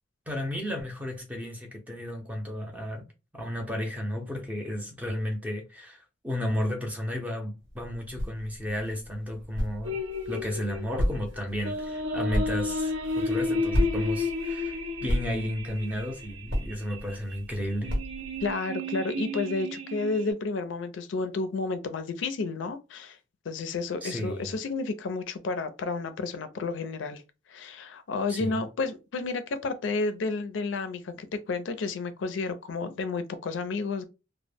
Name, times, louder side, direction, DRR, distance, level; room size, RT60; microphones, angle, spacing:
voice 1, 0.3-3.1 3.3-10.0 10.3-18.0 24.0-24.6 28.3-28.6, left 1 dB, 10° right, 0.5 m, -33 dB
sound 1, 7.6-18.5, equal, 70° right, 1.1 m, -34 dB
sound 2, 9.8-20.3, left 2 dB, 85° right, 0.7 m, -32 dB
voice 2, 18.4-23.2 23.5-27.2 27.5-34.0, left 3 dB, 75° left, 0.4 m, -31 dB
2.1 x 2.0 x 3.3 m
head